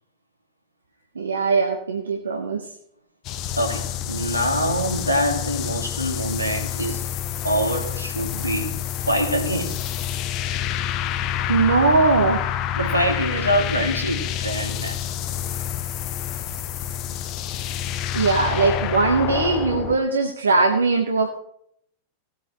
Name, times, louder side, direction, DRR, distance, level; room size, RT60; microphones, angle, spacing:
voice 1, 1.1-2.7 11.5-12.6 18.1-21.3, right 3 dB, 70° right, 1.4 m, -20 dB
sound 1, 3.2-20.0, left 10 dB, 40° left, 0.9 m, -28 dB
voice 2, 3.6-7.0 7.4-8.8 9.0-9.8 12.8-15.0, equal, 90° right, 2.4 m, -25 dB
18.5 x 8.7 x 3.2 m
figure-of-eight pair, 90°, 0 cm